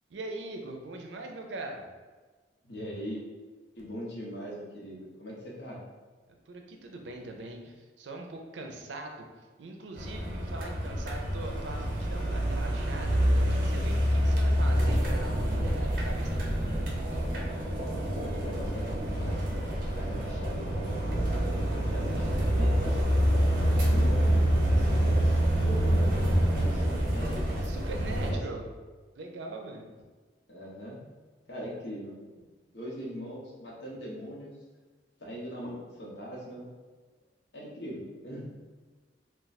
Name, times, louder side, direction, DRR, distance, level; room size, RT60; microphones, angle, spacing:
voice 1, 0.1-1.9 6.5-9.3 9.6-17.1 27.6-28.7 29.2-29.9, right 2 dB, 85° right, 3 dB, 0.5 m, -41 dB
voice 2, 2.6-3.2 3.7-5.8 18.1-23.3 23.8-27.5 28.2-28.4 30.5-31.0 31.5-32.3 32.7-34.6 35.2-36.7 37.5-38.5, equal, 75° left, -4 dB, 0.9 m, -41 dB
sound 1, 9.9-28.3, equal, 50° right, 0.7 m, -27 dB
2.4 x 2.3 x 4.0 m, 1.3 s
head